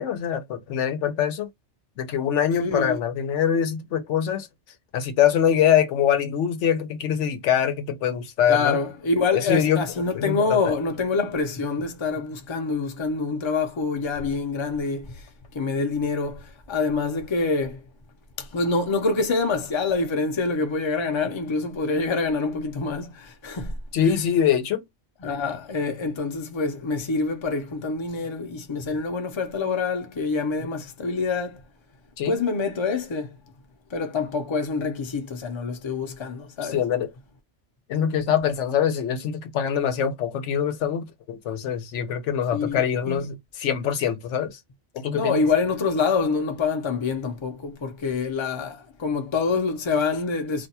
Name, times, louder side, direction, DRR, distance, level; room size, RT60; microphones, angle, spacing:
voice 1, 0.0-1.5 2.0-4.5 4.9-8.8 9.3-9.8 10.1-10.6 23.9-24.8 32.2-32.4 36.6-37.1 37.9-44.6 44.9-45.4, left 9 dB, 85° left, 1.0 m, -24 dB
voice 2, 2.6-3.0 8.5-15.3 15.5-17.8 18.4-23.8 25.2-31.6 32.3-33.4 33.9-36.8 42.5-43.3 45.1-50.7, left 4 dB, 30° left, 0.6 m, -26 dB
2.5 x 2.2 x 4.0 m
omnidirectional pair, 1.2 m